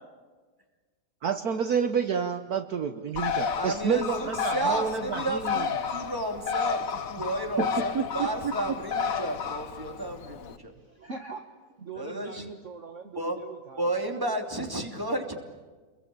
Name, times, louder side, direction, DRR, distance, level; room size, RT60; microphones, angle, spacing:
voice 1, 1.2-5.7 7.6-7.7 7.9-8.5, right 6 dB, 60° right, 9 dB, 1.5 m, -29 dB
Bird, 3.2-10.6, left 6 dB, 55° left, 1.5 m, -32 dB
voice 2, 3.6-10.7 11.9-12.5 13.1-13.4 13.8-15.3, right 1 dB, 10° right, 4 dB, 3.1 m, -32 dB
voice 3, 11.0-14.2, right 4 dB, 45° right, 5 dB, 1.7 m, -42 dB
28.0 x 22.5 x 8.7 m, 1.4 s
omnidirectional pair, 1.9 m